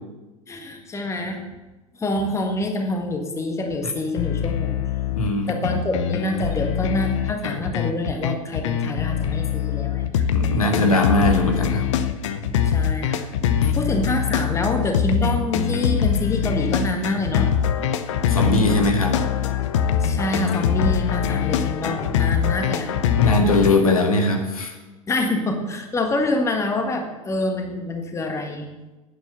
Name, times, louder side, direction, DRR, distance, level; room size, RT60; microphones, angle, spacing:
voice 1, 0.5-1.5 1.9-4.8 5.5-10.2 12.6-13.3 13.7-17.5 20.0-22.9 25.1-28.7, left 1 dB, 15° left, 4 dB, 1.6 m, -26 dB
sound 1, 4.1-23.7, left 8 dB, 55° left, 0.8 m, -23 dB
voice 2, 5.1-5.6 10.3-11.9 13.6-13.8 18.3-19.2 23.2-24.7, left 2 dB, 75° left, 3 dB, 1.9 m, -20 dB
9.6 x 9.2 x 6.8 m, 1.1 s
figure-of-eight pair, 85°, 18 cm